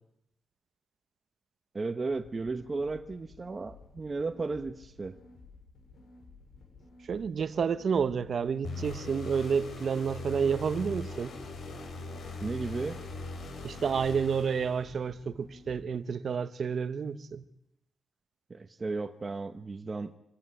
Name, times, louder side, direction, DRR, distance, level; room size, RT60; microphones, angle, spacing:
voice 1, 1.7-5.2 12.4-13.0 18.5-20.1, right 3 dB, 25° right, 1.1 m, -34 dB
sound 1, 2.1-15.8, left 3 dB, 85° left, 6.7 m, -54 dB
voice 2, 7.1-11.3 13.6-17.4, right 6 dB, 45° right, 1.2 m, -30 dB
sound 2, 8.6-15.1, left 2 dB, 65° left, 5.7 m, -41 dB
26.0 x 17.5 x 10.0 m
wide cardioid pair, 175°, 0 cm